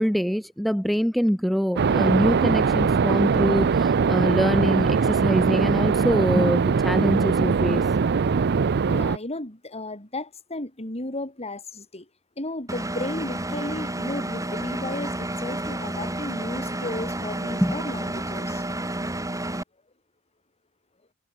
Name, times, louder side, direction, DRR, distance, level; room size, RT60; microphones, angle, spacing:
voice 1, 0.0-7.9 17.6-17.8, equal, ahead, 0.6 m, -24 dB
sound 1, 1.8-9.2, right 5 dB, 50° right, 0.5 m, -21 dB
voice 2, 8.9-12.1 12.4-18.6, left 2 dB, 30° left, 7.9 m, -34 dB
Engine, 12.7-19.6, right 1 dB, 15° right, 4.2 m, -30 dB
head